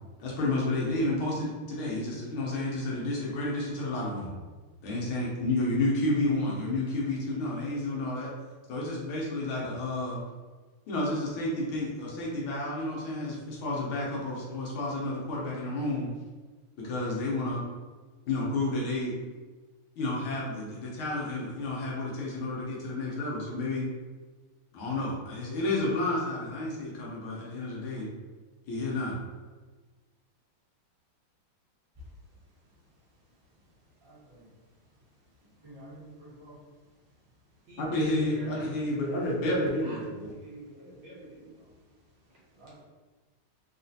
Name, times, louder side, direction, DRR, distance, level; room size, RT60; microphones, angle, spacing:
voice 1, 0.2-4.3 4.8-8.3 8.7-10.2 10.9-16.1 16.8-17.6 18.3-19.1 20.0-23.9 24.7-28.1 28.7-29.2 37.8-40.3, left 2 dB, 75° left, -4 dB, 1.7 m, -31 dB
voice 2, 34.0-34.4 35.6-36.6 42.6-42.8, right 1 dB, 30° right, -8 dB, 0.6 m, -50 dB
voice 3, 37.7-38.8 39.8-41.9, right 1 dB, 80° right, -5 dB, 1.6 m, -45 dB
4.1 x 2.4 x 2.7 m, 1.3 s
omnidirectional pair, 2.4 m